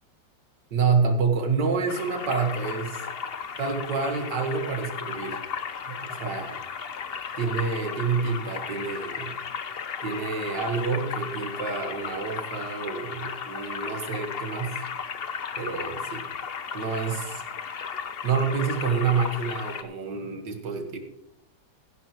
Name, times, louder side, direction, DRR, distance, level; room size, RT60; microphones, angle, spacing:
voice 1, 0.7-3.0 3.6-5.4 5.9-6.6 7.4-9.4 10.0-14.7 15.6-16.2 16.7-17.4 18.2-21.0, right 5 dB, 65° right, 5 dB, 2.1 m, -28 dB
sound 1, 1.9-19.8, left 6 dB, 50° left, 0.7 m, -35 dB
15.0 x 11.5 x 3.1 m, 0.82 s
omnidirectional pair, 2.0 m